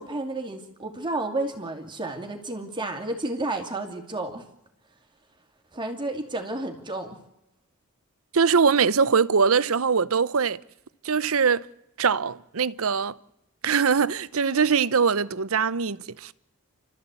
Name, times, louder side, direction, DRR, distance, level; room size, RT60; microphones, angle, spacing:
voice 1, 0.0-4.4 5.7-7.2, right 2 dB, 20° right, 2.5 m, -31 dB
voice 2, 8.3-10.6 11.0-11.7 12.0-13.2 13.6-16.3, right 5 dB, 70° right, 0.7 m, -22 dB
29.5 x 13.5 x 8.3 m
head